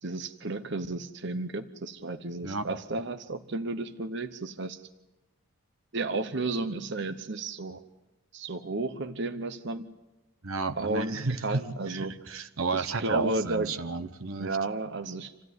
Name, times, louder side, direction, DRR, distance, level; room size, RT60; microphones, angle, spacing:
voice 1, 0.0-4.8 5.9-7.8 8.3-9.9 10.8-12.3 12.7-13.7 14.4-15.5, right 2 dB, 55° right, 9 dB, 0.9 m, -33 dB
voice 2, 10.4-11.6 11.9-14.5, right 3 dB, 80° right, 8 dB, 1.2 m, -32 dB
27.5 x 16.5 x 9.5 m, 1.0 s
head